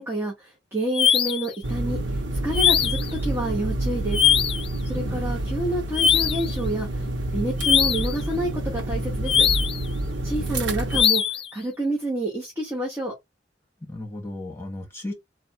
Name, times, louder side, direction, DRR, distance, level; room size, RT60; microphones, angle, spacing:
voice 1, 0.0-2.0 2.4-4.2 4.8-6.9 7.3-9.4 10.2-11.2 11.5-13.1, right 1 dB, 15° right, 1.0 m, -28 dB
sound 1, 0.9-1.5 2.5-3.1 4.1-4.7 5.9-6.5 7.6-8.2 9.3-9.8 10.9-11.5, left 8 dB, 30° left, 0.3 m, -21 dB
sound 2, 1.6-11.0, right 1 dB, 85° right, 0.8 m, -28 dB
voice 2, 4.9-5.4 10.3-10.5 13.8-15.1, left 1 dB, 15° left, 1.6 m, -35 dB
3.3 x 2.3 x 4.3 m
head